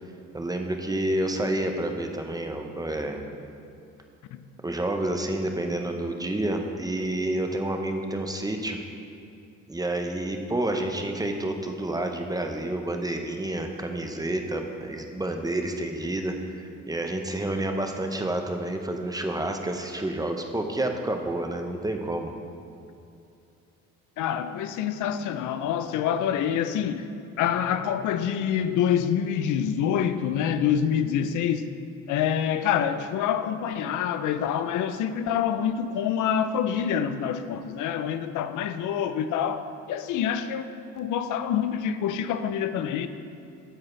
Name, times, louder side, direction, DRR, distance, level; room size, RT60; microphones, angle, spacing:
voice 1, 0.3-3.2 4.6-8.8 9.7-22.3, right 1 dB, 10° right, 0.7 m, -29 dB
voice 2, 24.2-27.1 27.4-31.7 32.1-40.7 41.0-43.1, left 8 dB, 80° left, 0.5 m, -26 dB
8.9 x 7.4 x 3.2 m
cardioid pair, 90°, 30 cm